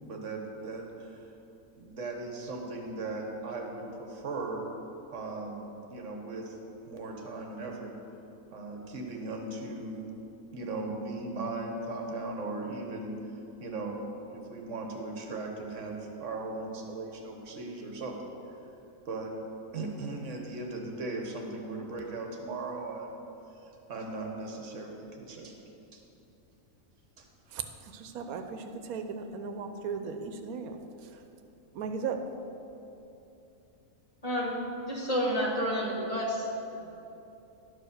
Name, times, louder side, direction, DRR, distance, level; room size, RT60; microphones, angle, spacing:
voice 1, 0.0-1.3 1.8-4.6 5.1-6.6 6.9-7.9 8.5-10.1 10.5-13.1 13.6-18.2 19.0-19.3 19.7-23.2 23.6-25.6 25.9-26.0 27.2-27.3, right 2 dB, 60° right, 2 dB, 1.3 m, -38 dB
voice 2, 27.5-31.2 31.7-32.2, right 5 dB, 80° right, 6 dB, 1.1 m, -37 dB
voice 3, 34.2-34.5 34.9-36.5 36.7-36.9, equal, 25° left, -4 dB, 1.4 m, -30 dB
11.0 x 4.9 x 6.5 m, 2.9 s
omnidirectional pair, 1.5 m